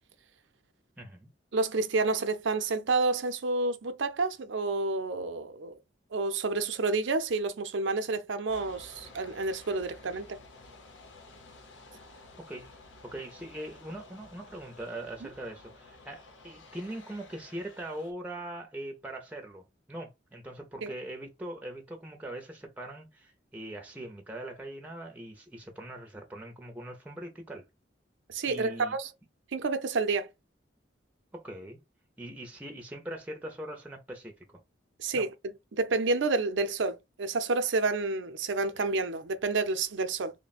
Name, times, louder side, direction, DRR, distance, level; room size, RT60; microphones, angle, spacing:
voice 1, 1.0-1.3 12.4-12.7 13.0-27.6 28.5-29.0 31.3-31.8 32.2-34.6 35.1-35.3, right 1 dB, 10° right, 0.5 m, -41 dB
voice 2, 1.5-5.7 6.1-10.4 15.2-15.3 20.8-20.9 28.3-29.1 29.5-30.3 35.0-35.3 35.7-40.3, right 3 dB, 80° right, 0.6 m, -29 dB
sound 1, 8.5-18.1, left 3 dB, 90° left, 0.9 m, -52 dB
3.2 x 2.2 x 4.1 m
head